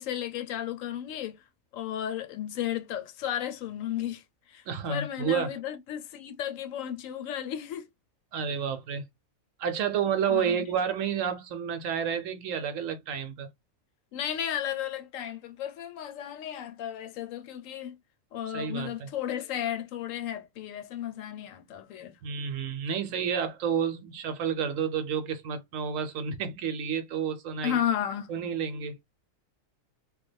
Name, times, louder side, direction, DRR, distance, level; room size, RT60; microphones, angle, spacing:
voice 1, 0.0-1.4 1.7-4.2 4.5-7.8 10.3-10.6 14.1-18.0 18.3-22.2 27.6-28.3, left 10 dB, 75° left, 0.9 m, -34 dB
voice 2, 4.7-5.6 8.3-9.0 9.6-13.5 18.5-19.1 22.2-27.8 28.3-29.2, right 7 dB, 75° right, 1.0 m, -30 dB
3.2 x 2.2 x 3.2 m
omnidirectional pair, 1.4 m